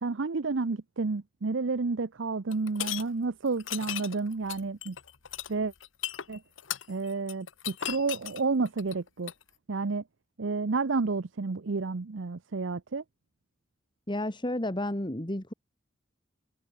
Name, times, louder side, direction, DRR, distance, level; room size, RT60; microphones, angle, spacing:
voice 1, 0.0-5.0 5.5-5.7 6.3-6.4 6.9-9.3 9.7-10.0 10.4-13.0, right 4 dB, 70° right, 0.7 m, -30 dB
sound 1, 2.5-3.0 3.6-9.4, left 11 dB, 75° left, 1.3 m, -36 dB
voice 2, 14.1-15.5, left 1 dB, 25° left, 2.2 m, -31 dB
head